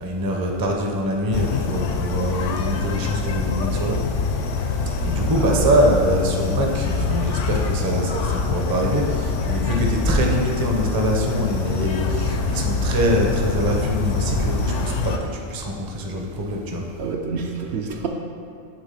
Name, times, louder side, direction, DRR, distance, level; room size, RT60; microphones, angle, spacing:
voice 1, 0.0-4.0 5.0-15.1 15.5-16.8, equal, 25° right, 1 dB, 0.5 m, -24 dB
sound 1, 1.3-15.2, left 4 dB, 70° left, 0.9 m, -24 dB
voice 2, 5.3-5.8 17.0-18.1, right 5 dB, 65° right, 1 dB, 0.8 m, -28 dB
8.0 x 3.5 x 5.4 m, 2.6 s
omnidirectional pair, 1.3 m